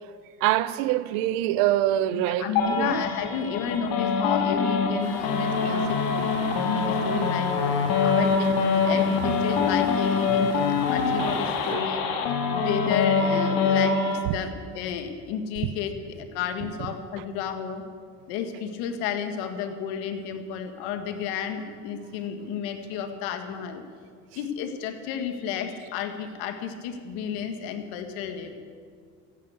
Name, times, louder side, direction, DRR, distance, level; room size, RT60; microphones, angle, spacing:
voice 1, 0.4-3.0 5.6-5.9 10.4-10.5 11.7-11.9 14.3-14.4, right 13 dB, 85° right, 0.8 m, -25 dB
voice 2, 2.1-12.1 12.5-17.8 18.3-23.8 24.4-28.6, left 7 dB, 85° left, 1.7 m, -32 dB
sound 1, 2.6-14.2, left 5 dB, 70° left, 2.3 m, -24 dB
sound 2, 5.0-11.8, left 3 dB, 45° left, 3.5 m, -39 dB
15.0 x 11.0 x 8.2 m
supercardioid pair, 80°, 37 cm